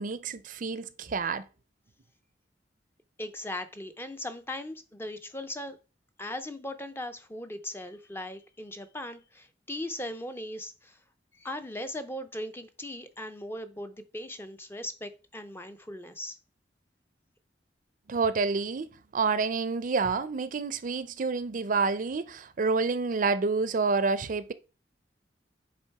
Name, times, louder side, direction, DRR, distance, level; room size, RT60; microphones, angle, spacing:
voice 1, 0.0-1.5 18.1-24.5, right 4 dB, 50° right, 0.5 m, -28 dB
voice 2, 3.2-5.8 6.2-11.0 11.4-16.4, left 1 dB, 15° left, 0.5 m, -38 dB
7.6 x 3.5 x 4.6 m
head